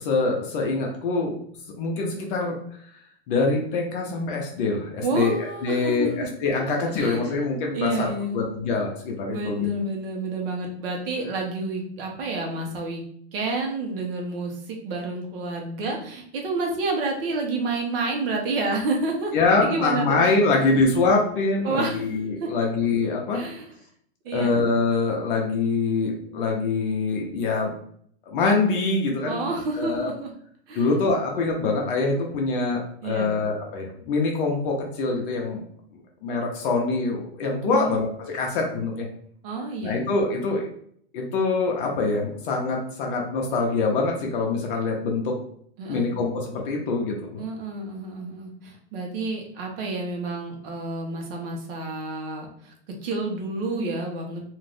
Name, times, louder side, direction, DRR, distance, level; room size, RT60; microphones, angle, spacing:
voice 1, 0.0-1.3 1.8-2.6 3.3-5.3 5.6-9.7 19.3-23.4 24.3-27.7 28.3-29.5 29.8-30.1 30.7-35.6 36.2-38.1 38.3-39.1 39.8-40.7 41.1-45.3 45.9-47.4, left 3 dB, 50° left, 0 dB, 0.7 m, -24 dB
voice 2, 5.0-6.3 6.8-7.4 7.7-8.4 9.3-13.0 13.3-19.3 19.6-20.2 21.6-22.1 22.4-22.5 23.3-23.7 24.2-24.5 29.3-30.3 30.7-30.9 33.0-33.4 37.6-37.9 39.4-40.0 45.8-46.1 47.4-52.7 53.0-54.4, right 2 dB, 55° right, 1 dB, 0.9 m, -29 dB
2.6 x 2.5 x 3.3 m, 0.64 s
supercardioid pair, 145°, 33 cm